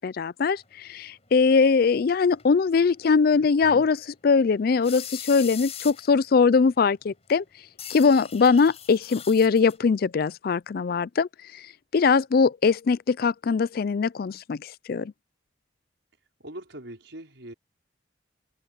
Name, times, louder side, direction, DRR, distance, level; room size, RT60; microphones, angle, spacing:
voice 1, 0.0-4.0 4.2-7.4 7.9-11.3 11.9-15.1, left 5 dB, 55° left, 0.4 m, -21 dB
sound 1, 0.9-2.1 2.4-2.5 2.9-3.0 3.5-3.6 4.3-4.5 4.8-6.2 6.7-6.9 7.3-7.4 7.8-9.8, left 9 dB, 35° left, 5.3 m, -41 dB
voice 2, 3.3-3.9 16.4-17.5, right 1 dB, 80° right, 5.3 m, -42 dB
open air
head